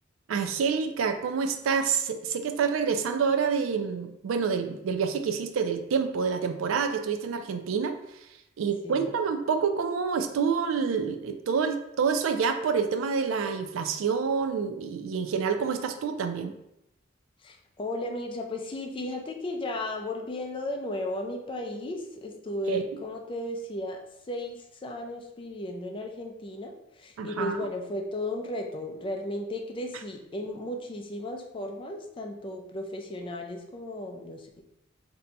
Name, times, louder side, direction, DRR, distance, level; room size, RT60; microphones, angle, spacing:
voice 1, 0.3-8.0 8.6-16.5 22.7-22.8 27.2-27.6, right 6 dB, 85° right, 7 dB, 0.3 m, -27 dB
voice 2, 17.4-24.0 24.3-34.5, left 1 dB, 25° left, 2 dB, 0.4 m, -35 dB
2.7 x 2.2 x 3.9 m, 0.84 s
head